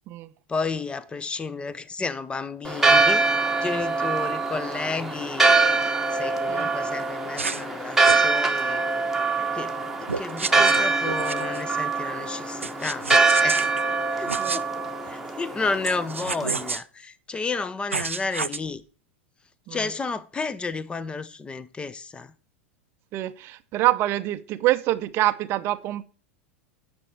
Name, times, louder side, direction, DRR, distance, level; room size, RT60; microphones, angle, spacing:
voice 1, 0.5-3.2 3.6-5.4 6.1-8.8 9.5-13.1 13.4-13.6 14.1-14.7 15.0-18.8 19.7-22.3, left 4 dB, 15° left, 0.8 m, -32 dB
Church bell, 2.6-16.7, right 3 dB, 5° right, 1.3 m, -24 dB
sound 1, 7.4-7.7 8.0-8.3 10.1-11.6 12.6-13.8 14.3-14.6 15.8-16.8 17.9-18.6, right 4 dB, 85° right, 0.4 m, -30 dB
voice 2, 23.1-26.0, right 16 dB, 40° right, 0.6 m, -25 dB
9.9 x 6.1 x 4.5 m
figure-of-eight pair, 90°, 7 cm